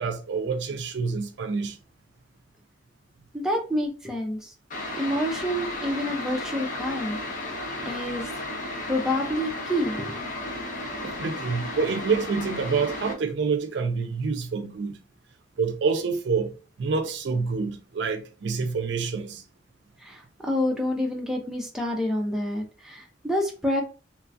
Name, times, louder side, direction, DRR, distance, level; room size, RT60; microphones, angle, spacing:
voice 1, 0.0-1.8 11.0-14.9 15.6-19.4, right 4 dB, 65° right, 0.4 m, -27 dB
voice 2, 3.3-4.5 5.0-7.2 7.8-8.3 8.9-10.1 20.0-23.8, left 1 dB, 5° right, 0.4 m, -28 dB
sound 1, 4.7-13.1, left 1 dB, 45° left, 0.7 m, -34 dB
3.1 x 2.3 x 2.5 m
head